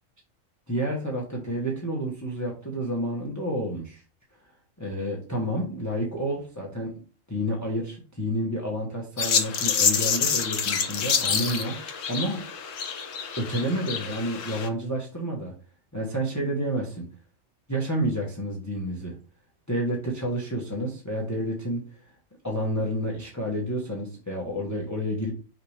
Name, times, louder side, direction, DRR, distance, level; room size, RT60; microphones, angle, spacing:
voice 1, 0.7-4.0 4.8-6.9 7.3-11.8 12.1-12.5 13.4-15.5 15.9-17.0 17.7-19.1 19.7-21.8 22.4-25.3, equal, 15° left, -2 dB, 1.2 m, -29 dB
sound 1, 9.2-14.7, left 6 dB, 70° left, 1.3 m, -27 dB
5.7 x 5.0 x 3.4 m, 0.38 s
omnidirectional pair, 1.4 m